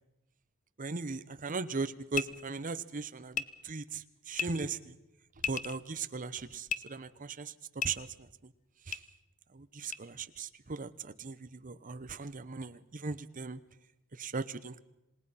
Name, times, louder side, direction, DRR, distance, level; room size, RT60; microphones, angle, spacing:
voice 1, 0.8-4.9 5.5-7.5 7.8-8.3 8.9-9.0 9.5-13.6 14.2-14.8, right 4 dB, 40° right, 13 dB, 0.8 m, -38 dB
sound 1, 2.1-2.3 3.3-3.4 4.3-4.5 5.4-5.8 6.7-6.8 7.8-7.9 8.9-9.0 9.9-10.0, left 7 dB, 35° left, 0.7 m, -33 dB
27.5 x 18.0 x 5.7 m, 0.91 s
head